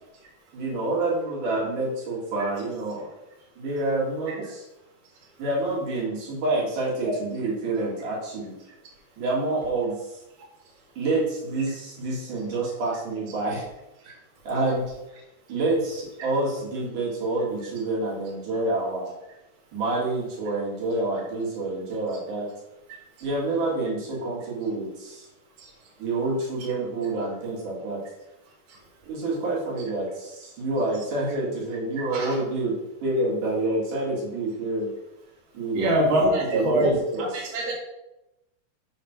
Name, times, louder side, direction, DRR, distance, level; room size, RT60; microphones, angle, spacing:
voice 1, 0.5-3.1 3.6-4.6 5.4-8.5 9.2-10.0 11.0-13.6 14.5-14.9 15.5-19.1 19.7-22.5 23.2-25.3 26.0-28.0 29.1-32.7 33.0-34.9 35.5-35.9 36.2-36.8 37.1-37.3, right 2 dB, 65° right, -5 dB, 3.4 m, -27 dB
voice 2, 35.7-37.7, right 1 dB, 40° right, -4 dB, 2.4 m, -24 dB
7.9 x 4.2 x 5.8 m, 0.93 s
omnidirectional pair, 4.0 m